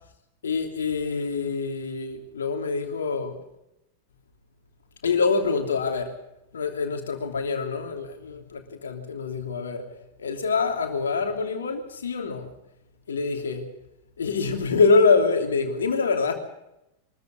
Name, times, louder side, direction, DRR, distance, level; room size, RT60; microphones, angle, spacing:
voice 1, 0.4-3.4 5.0-6.2 6.5-9.9 10.2-12.5 13.1-13.7 14.2-16.3, left 4 dB, 70° left, 3.0 m, -25 dB
23.5 x 14.0 x 8.3 m
figure-of-eight pair, 90°, 0 cm